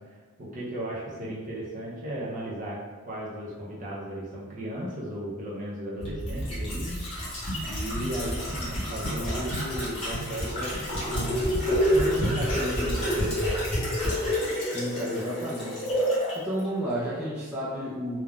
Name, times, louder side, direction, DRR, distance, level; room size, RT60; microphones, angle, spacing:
voice 1, 0.4-2.8 3.1-7.0 7.6-13.4, right 1 dB, 35° right, -6 dB, 0.6 m, -35 dB
sound 1, 6.0-16.4 16.6-16.7, equal, 25° left, 1.0 m, -28 dB
voice 2, 14.7-16.1 16.4-18.2, equal, 5° right, -9 dB, 0.4 m, -32 dB
3.4 x 2.2 x 2.4 m, 1.6 s
head